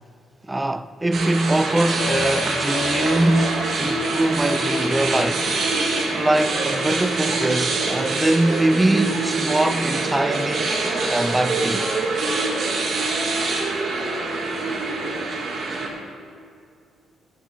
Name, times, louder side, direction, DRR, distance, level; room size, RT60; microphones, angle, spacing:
voice 1, 0.4-5.5 6.1-10.8 11.1-11.9, right 1 dB, 15° right, 0.4 m, -22 dB
sound 1, 1.1-15.9, right 3 dB, 55° right, 1.7 m, -25 dB
sound 2, 2.0-8.2 8.6-8.7, left 6 dB, 60° left, 0.7 m, -34 dB
12.0 x 8.4 x 4.3 m
cardioid pair, 90°, 0 cm